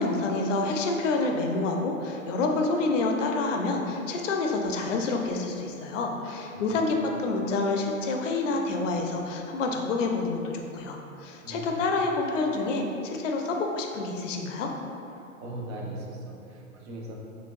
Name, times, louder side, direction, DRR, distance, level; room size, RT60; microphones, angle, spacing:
voice 1, 0.0-14.7, left 3 dB, 65° left, 2 dB, 0.6 m, -28 dB
voice 2, 6.2-6.8 11.4-12.1 15.1-17.1, right 1 dB, 50° right, -2 dB, 0.8 m, -40 dB
4.6 x 2.2 x 2.5 m, 2.8 s
hypercardioid pair, 110°, 41 cm